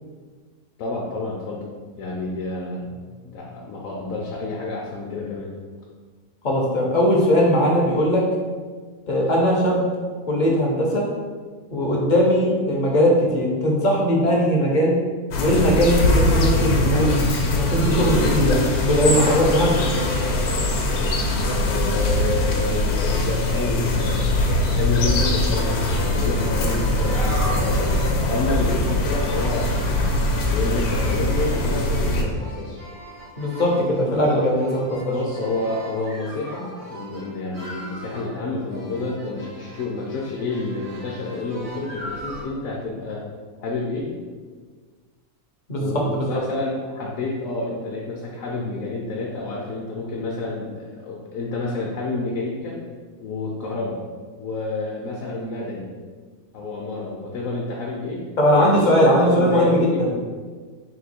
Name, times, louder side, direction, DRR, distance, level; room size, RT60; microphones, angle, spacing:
voice 1, 0.8-1.6 2.0-5.5 21.6-30.1 30.5-32.8 35.1-43.2 43.6-44.1 45.8-52.7 53.2-54.0 54.4-55.9 56.5-58.2 58.5-58.7 59.1-60.0, left 2 dB, 65° left, -3 dB, 1.0 m, -29 dB
voice 2, 6.4-8.2 9.1-9.8 10.3-11.0 11.7-14.9 15.4-17.1 17.5-19.8 33.4-35.1 45.7-46.4 58.4-60.1, equal, 45° left, -2 dB, 0.6 m, -19 dB
sound 1, 15.3-32.2, left 1 dB, 85° left, 1.1 m, -22 dB
sound 2, 25.4-42.4, right 1 dB, 80° right, 1.9 m, -38 dB
3.8 x 2.6 x 4.3 m, 1.5 s
omnidirectional pair, 1.6 m